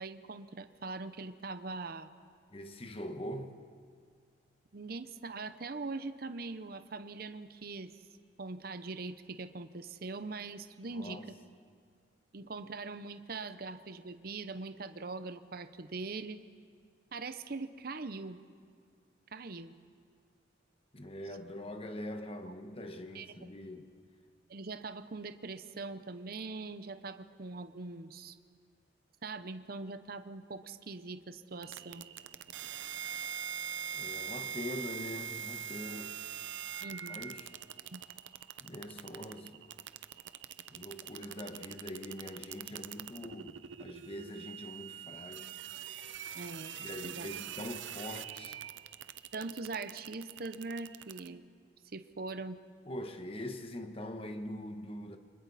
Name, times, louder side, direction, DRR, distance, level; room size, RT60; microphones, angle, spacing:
voice 1, 0.0-2.1 4.7-7.9 8.4-11.4 12.3-16.4 17.1-18.4 19.3-19.7 23.1-23.3 24.5-28.4 29.2-32.1 36.8-37.2 37.9-38.0 46.3-46.8 47.0-47.3 49.3-51.5 51.9-52.6, right 3 dB, 55° right, 0.8 m, -42 dB
voice 2, 2.5-3.6 10.9-11.3 20.9-23.9 33.9-36.2 37.1-37.5 38.6-39.6 40.7-45.6 46.8-48.6 52.8-55.2, left 1 dB, 30° left, 1.2 m, -43 dB
sound 1, 31.6-51.3, right 9 dB, 90° right, 0.6 m, -43 dB
30.0 x 25.0 x 4.1 m
head